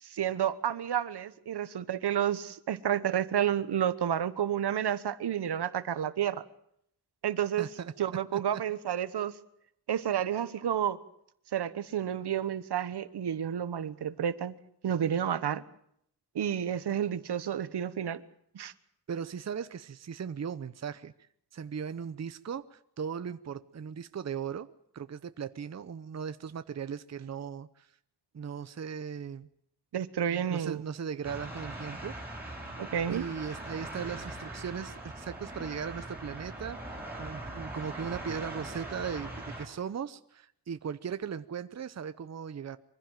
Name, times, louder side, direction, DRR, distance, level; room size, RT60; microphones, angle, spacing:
voice 1, 0.0-6.4 7.2-7.7 8.0-9.3 9.9-11.0 11.5-14.5 14.8-15.6 16.3-18.2 18.5-18.7 29.9-30.8 32.8-33.3, right 9 dB, 80° right, 15 dB, 1.2 m, -30 dB
voice 2, 7.6-8.6 19.1-21.1 21.5-24.7 24.9-27.9 28.3-29.5 30.3-32.2 32.4-32.6 33.1-42.8, right 7 dB, 40° right, 12 dB, 0.8 m, -38 dB
sound 1, 31.2-39.6, right 1 dB, 5° right, 8.0 m, -41 dB
24.0 x 15.5 x 9.1 m, 0.71 s
wide cardioid pair, 120°, 40 cm